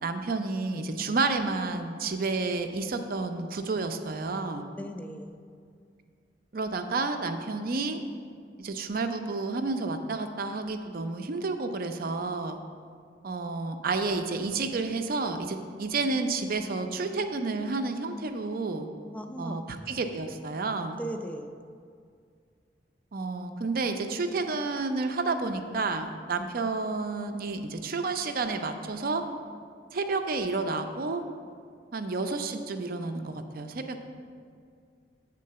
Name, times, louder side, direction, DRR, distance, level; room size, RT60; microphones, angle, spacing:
voice 1, 0.0-4.6 6.5-8.0 8.6-12.6 13.2-18.9 19.4-21.0 23.1-29.2 29.9-31.2 31.9-34.0, right 3 dB, 55° right, 7 dB, 0.5 m, -30 dB
voice 2, 4.8-5.4 19.1-19.6 21.0-21.5, right 1 dB, 10° left, 5 dB, 0.3 m, -37 dB
8.5 x 3.8 x 6.6 m, 2.2 s
head